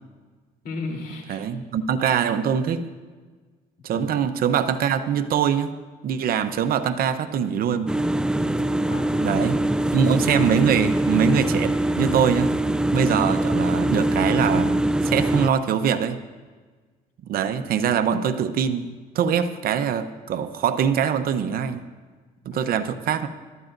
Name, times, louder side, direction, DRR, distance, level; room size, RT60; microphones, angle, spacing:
voice 1, 0.6-1.4 3.9-4.2 8.9-9.4 9.7-9.8 17.7-18.0 22.5-22.7, left 3 dB, 65° left, 1 dB, 3.4 m, -36 dB
voice 2, 1.3-2.8 3.8-5.7 6.0-8.0 9.2-9.6 9.9-12.5 12.9-16.2 17.3-21.8 22.4-23.3, right 8 dB, 60° right, 9 dB, 0.9 m, -23 dB
sound 1, 7.9-15.5, right 1 dB, 5° right, 0.4 m, -23 dB
22.5 x 13.0 x 2.6 m, 1.4 s
cardioid pair, 110°, 17 cm